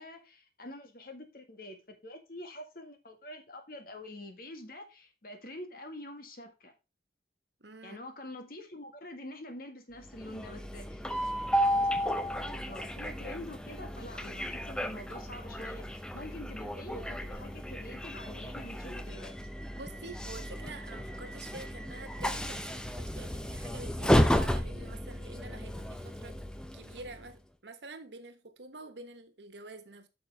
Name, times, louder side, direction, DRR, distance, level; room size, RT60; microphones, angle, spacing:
voice 1, 0.0-6.7 7.8-11.0 11.6-19.4, left 1 dB, 55° left, 1.9 m, -46 dB
voice 2, 7.6-8.0 19.7-26.4 26.7-30.1, right 3 dB, 75° right, 1.3 m, -47 dB
Train, 10.0-27.3, equal, 5° left, 0.6 m, -33 dB
9.0 x 6.3 x 3.5 m
head